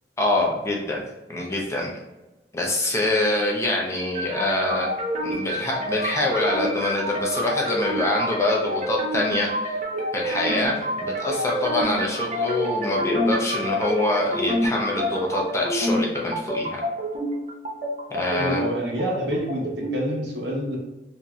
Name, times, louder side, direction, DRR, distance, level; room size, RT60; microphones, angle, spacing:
voice 1, 0.2-1.0 1.3-1.9 2.5-4.9 5.2-9.8 10.1-16.8 18.1-18.6, left 2 dB, 15° left, -2 dB, 0.4 m, -25 dB
sound 1, 4.0-20.0, equal, 40° right, 0.5 m, -28 dB
voice 2, 18.4-20.8, equal, 70° right, -3 dB, 0.9 m, -27 dB
2.9 x 2.6 x 2.3 m, 1.0 s
head